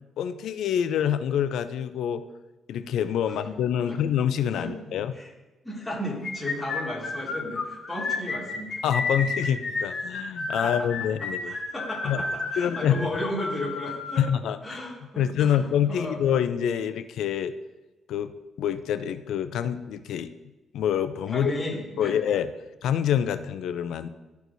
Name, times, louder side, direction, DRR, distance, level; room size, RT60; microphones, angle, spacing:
voice 1, 0.2-2.2 2.7-5.1 8.8-11.5 12.0-12.2 12.6-13.1 14.2-14.8 15.2-17.5 18.1-18.3 18.6-20.3 20.7-21.5 22.0-22.5 22.8-24.1, left 9 dB, 75° left, 12 dB, 0.5 m, -26 dB
voice 2, 4.5-5.3 5.6-8.8 9.4-9.5 10.6-10.9 11.2-14.2 14.6-16.2 21.3-22.2, left 1 dB, 5° left, -6 dB, 2.3 m, -34 dB
sound 1, 6.2-14.3, left 3 dB, 50° left, 1.4 m, -31 dB
12.5 x 4.6 x 2.7 m, 1.1 s
cardioid pair, 90°, 0 cm